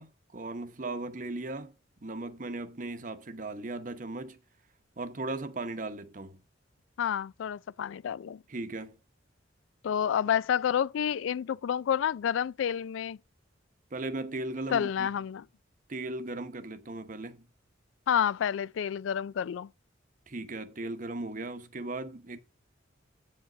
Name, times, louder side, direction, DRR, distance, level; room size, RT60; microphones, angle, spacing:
voice 1, 0.0-1.7 2.0-4.4 5.0-6.4 8.5-9.0 13.9-15.1 15.9-17.5 20.3-22.4, right 2 dB, 45° right, 0.9 m, -37 dB
voice 2, 7.0-8.4 9.8-13.2 14.7-15.4 18.1-19.7, left 8 dB, 80° left, 0.3 m, -29 dB
8.6 x 5.2 x 5.0 m
head